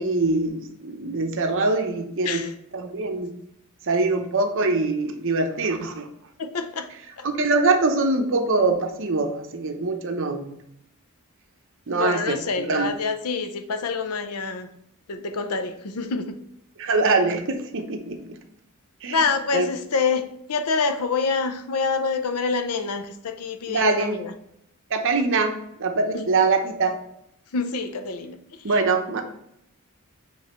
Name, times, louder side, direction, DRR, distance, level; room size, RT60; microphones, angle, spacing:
voice 1, 0.0-2.4 2.7-3.3 3.8-6.1 7.2-10.5 11.9-12.9 16.8-18.4 19.0-19.2 19.5-19.7 23.7-24.2 24.9-27.0 28.6-29.3, right 3 dB, 60° right, 0.8 m, -23 dB
voice 2, 6.4-6.9 7.2-7.3 11.9-14.7 15.1-16.4 19.1-24.3 26.1-26.3 27.5-28.4 28.7-28.8, left 4 dB, 85° left, 0.6 m, -26 dB
7.1 x 3.2 x 4.3 m
head